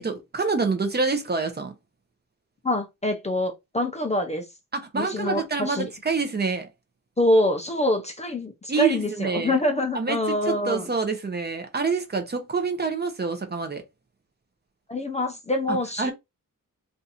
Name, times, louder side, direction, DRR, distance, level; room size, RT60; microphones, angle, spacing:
voice 1, 0.0-1.7 4.7-6.7 8.7-9.5 9.9-13.8 15.7-16.1, right 4 dB, 30° right, 0.6 m, -27 dB
voice 2, 2.6-4.4 5.0-5.9 7.2-10.9 14.9-16.1, left 1 dB, 20° left, 0.5 m, -25 dB
2.6 x 2.4 x 4.1 m
wide cardioid pair, 155°, 35 cm